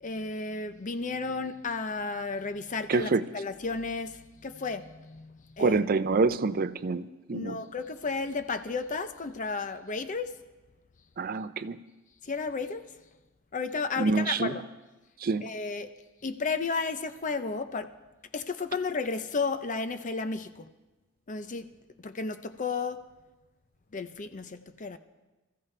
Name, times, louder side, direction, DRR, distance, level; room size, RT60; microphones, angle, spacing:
voice 1, 0.0-5.8 7.3-10.4 12.2-12.8 13.5-14.7 15.4-15.9 16.2-18.0 18.3-20.7 21.3-21.7 22.0-23.1 23.9-25.0, left 4 dB, 35° left, 0.7 m, -33 dB
voice 2, 2.9-3.3 5.6-7.6 11.2-11.8 14.0-14.5 15.2-15.4, right 4 dB, 45° right, 0.5 m, -27 dB
26.5 x 14.5 x 3.3 m
head